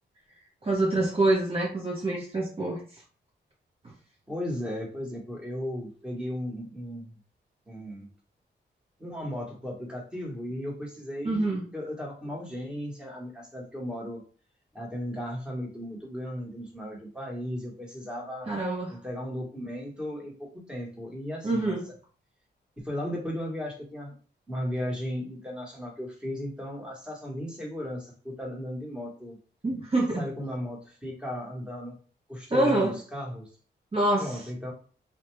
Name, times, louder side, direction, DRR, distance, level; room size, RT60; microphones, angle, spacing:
voice 1, 0.6-2.8 11.2-11.7 18.5-19.0 21.4-21.9 29.6-30.2 32.5-32.9 33.9-34.4, right 2 dB, 30° right, -3 dB, 0.8 m, -26 dB
voice 2, 4.3-7.1 7.7-8.1 9.0-11.4 11.7-14.2 14.7-18.6 18.9-21.7 22.8-24.1 24.5-29.4 30.2-31.9 32.3-33.5 34.2-34.7, equal, 5° right, -2 dB, 1.2 m, -36 dB
2.4 x 2.2 x 3.1 m, 0.40 s
cardioid pair, 80°, 19 cm